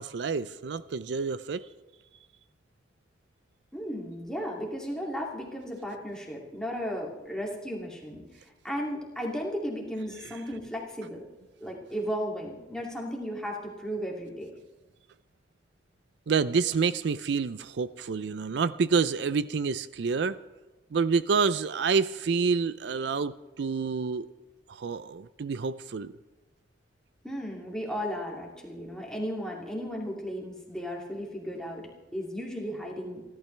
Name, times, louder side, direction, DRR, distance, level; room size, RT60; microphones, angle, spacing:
voice 1, 0.0-1.7 16.3-20.4 20.9-24.3 24.7-26.1, right 5 dB, 65° right, 15 dB, 0.4 m, -28 dB
voice 2, 3.7-8.2 8.6-11.2 11.6-14.5 27.2-33.2, equal, 5° left, -2 dB, 2.5 m, -35 dB
29.0 x 12.0 x 3.3 m, 1.2 s
head